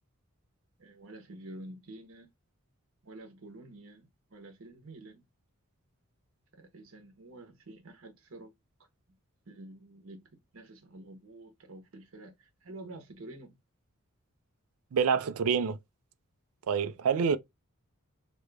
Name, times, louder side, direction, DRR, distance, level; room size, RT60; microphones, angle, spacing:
voice 1, 0.8-2.3 3.0-5.2 6.5-8.5 9.5-13.6, right 2 dB, 70° right, 0.8 m, -49 dB
voice 2, 14.9-15.8 16.7-17.4, right 6 dB, 85° right, 0.4 m, -27 dB
2.9 x 2.3 x 3.1 m
head